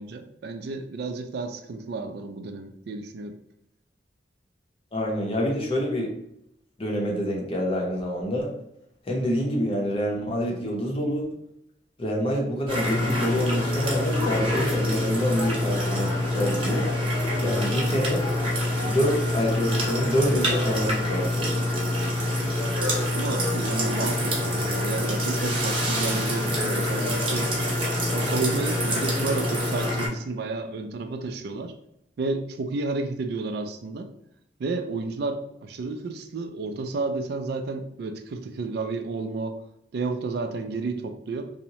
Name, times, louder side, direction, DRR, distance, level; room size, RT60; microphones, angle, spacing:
voice 1, 0.0-3.4 23.1-27.7 28.1-31.7 32.2-34.1 34.6-39.6 39.9-41.5, right 3 dB, 65° right, 7 dB, 0.3 m, -31 dB
voice 2, 4.9-6.1 6.8-8.5 9.1-11.3 12.0-16.9 17.4-18.2 18.8-21.6, equal, 30° left, -1 dB, 0.6 m, -27 dB
sound 1, 12.7-30.1, left 1 dB, 30° right, 0.7 m, -26 dB
2.7 x 2.0 x 2.9 m, 0.78 s
head